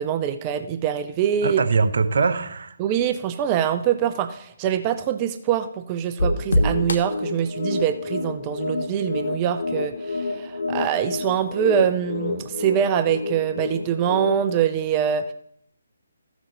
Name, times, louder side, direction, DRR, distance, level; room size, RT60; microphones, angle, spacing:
voice 1, 0.0-1.6 2.8-15.3, right 9 dB, 25° right, 9 dB, 0.5 m, -24 dB
voice 2, 1.4-2.8, right 4 dB, 55° right, 8 dB, 0.9 m, -22 dB
sound 1, 6.2-14.6, left 2 dB, 65° left, 1.0 m, -27 dB
15.0 x 6.1 x 4.0 m, 0.69 s
figure-of-eight pair, 145°, 0 cm